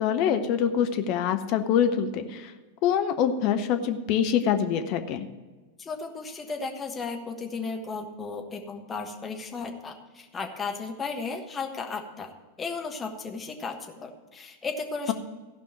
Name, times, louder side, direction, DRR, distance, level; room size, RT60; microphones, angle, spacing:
voice 1, 0.0-2.5 2.8-5.3, left 8 dB, 40° left, 8 dB, 0.8 m, -25 dB
voice 2, 5.8-12.3 12.6-15.1, left 4 dB, 20° left, 3 dB, 1.4 m, -35 dB
15.0 x 5.4 x 7.5 m, 1.3 s
figure-of-eight pair, 90°, 0 cm